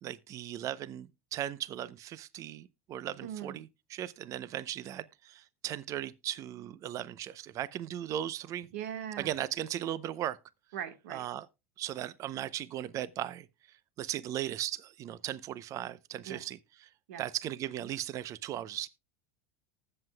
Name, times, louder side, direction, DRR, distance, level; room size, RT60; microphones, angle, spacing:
voice 1, 0.0-8.7 9.2-10.4 11.1-11.5 11.8-13.5 14.0-16.6 17.2-18.9, right 12 dB, 45° right, 0.6 m, -37 dB
voice 2, 3.2-3.6 8.7-9.3 10.7-11.3 16.2-16.5 17.1-17.2, right 9 dB, 80° right, 1.4 m, -40 dB
19.5 x 7.8 x 2.2 m
supercardioid pair, 105°, 8 cm